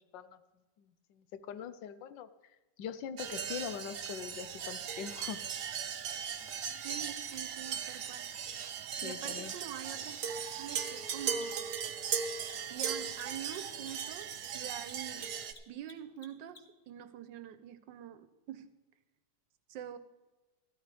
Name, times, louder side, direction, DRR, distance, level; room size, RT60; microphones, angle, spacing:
voice 1, 0.8-2.3 2.8-5.4 9.0-9.5, left 8 dB, 85° left, 12 dB, 1.4 m, -42 dB
sound 1, 3.2-15.5, right 7 dB, 60° right, 1.0 m, -38 dB
voice 2, 6.7-8.3 9.0-10.2 10.6-11.6 12.7-15.3 15.7-18.7 19.7-20.0, right 10 dB, 90° right, 12 dB, 1.4 m, -45 dB
Mechanisms, 8.2-8.3 11.2-16.9, left 3 dB, 35° left, 1.2 m, -56 dB
14.0 x 12.5 x 3.3 m, 1.2 s
omnidirectional pair, 1.9 m